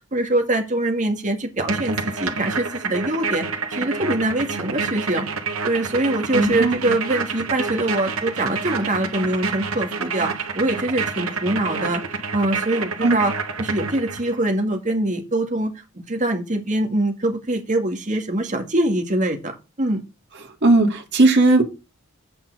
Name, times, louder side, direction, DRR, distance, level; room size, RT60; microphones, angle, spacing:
voice 1, 0.1-5.3 5.6-13.3 13.6-15.7 16.1-20.0, right 1 dB, 35° right, 4 dB, 2.1 m, -23 dB
sound 1, 1.6-14.4, right 4 dB, 80° right, 1.6 m, -28 dB
voice 2, 6.3-6.8 13.0-13.2 20.6-21.6, right 2 dB, 55° right, 2 dB, 2.4 m, -16 dB
8.6 x 6.0 x 5.5 m, 0.27 s
head